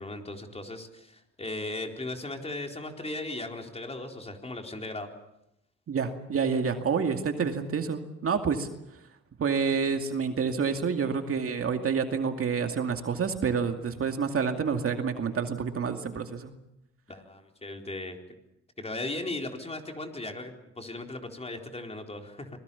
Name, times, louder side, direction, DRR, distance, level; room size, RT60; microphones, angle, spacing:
voice 1, 0.0-5.1 17.1-18.2 18.8-22.5, left 2 dB, 20° left, 3 dB, 4.1 m, -37 dB
voice 2, 5.9-8.7 9.4-16.5, right 6 dB, 50° right, 5 dB, 2.4 m, -28 dB
25.5 x 21.0 x 7.1 m, 0.84 s
cardioid pair, 90°, 30 cm